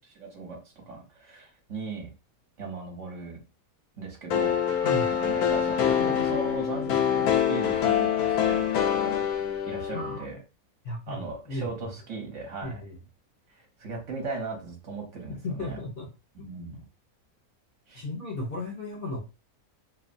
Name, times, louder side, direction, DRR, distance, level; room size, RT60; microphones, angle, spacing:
voice 1, 0.0-2.1 2.6-3.4 4.0-4.6 5.2-8.7 9.0-9.2 9.7-10.4 11.1-12.8 13.5-15.8 16.4-16.8 17.9-18.0, right 3 dB, 60° right, 0 dB, 1.1 m, -38 dB
sound 1, 4.3-10.2, left 9 dB, 80° left, 1.1 m, -25 dB
voice 2, 4.8-5.1 9.9-10.3 10.8-11.7 12.6-13.0 15.3-16.1 16.4-16.5 17.9-19.2, left 2 dB, 55° left, -2 dB, 0.7 m, -35 dB
3.1 x 2.0 x 2.5 m, 0.29 s
omnidirectional pair, 1.6 m